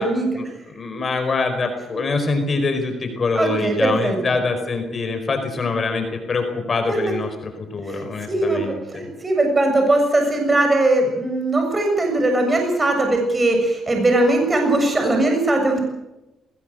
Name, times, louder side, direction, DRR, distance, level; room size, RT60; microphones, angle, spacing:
voice 1, 0.4-9.1, left 3 dB, 40° left, 6 dB, 4.7 m, -24 dB
voice 2, 3.3-4.2 6.9-7.0 7.9-15.8, right 2 dB, 25° right, 3 dB, 7.0 m, -20 dB
21.0 x 19.5 x 7.9 m, 0.96 s
cardioid pair, 90°, 0 cm